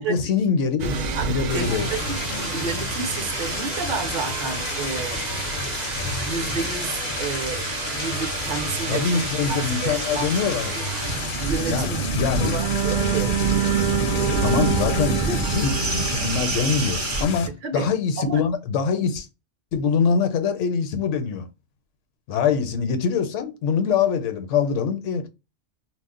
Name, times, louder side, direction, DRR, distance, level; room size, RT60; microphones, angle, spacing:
voice 1, 0.0-1.9 8.9-10.7 11.7-12.5 14.4-15.2 15.5-19.3 19.7-21.5 22.3-25.3, left 6 dB, 80° left, 0.9 m, -24 dB
sound 1, 0.8-17.2, right 6 dB, 85° right, 0.3 m, -27 dB
sound 2, 1.5-17.5, left 4 dB, 60° left, 0.6 m, -31 dB
voice 2, 1.5-5.2 6.2-7.7 7.9-10.3 10.8-10.9 11.4-12.1 12.4-13.4 15.2-15.4 17.6-17.9 18.2-18.4 22.5-22.6, right 4 dB, 55° right, 0.6 m, -31 dB
2.3 x 2.0 x 3.6 m
omnidirectional pair, 1.3 m